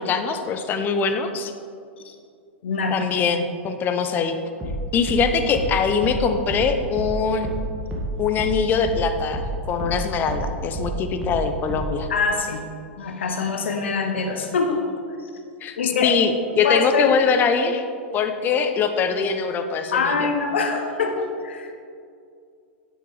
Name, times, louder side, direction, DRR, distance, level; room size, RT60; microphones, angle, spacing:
voice 1, 0.0-1.5 2.9-4.3 4.9-7.5 8.2-12.1 15.6-17.8 18.1-20.3, left 5 dB, 30° left, 8 dB, 0.8 m, -22 dB
voice 2, 2.6-3.3 12.1-12.6 13.0-14.8 15.2-15.3 15.8-16.1 16.6-17.1 19.9-21.7, left 4 dB, 65° left, 4 dB, 1.0 m, -24 dB
sound 1, 4.6-9.5 9.8-12.0, right 2 dB, 10° right, 2.1 m, -29 dB
9.8 x 9.4 x 3.5 m, 2.3 s
figure-of-eight pair, 95°, 7 cm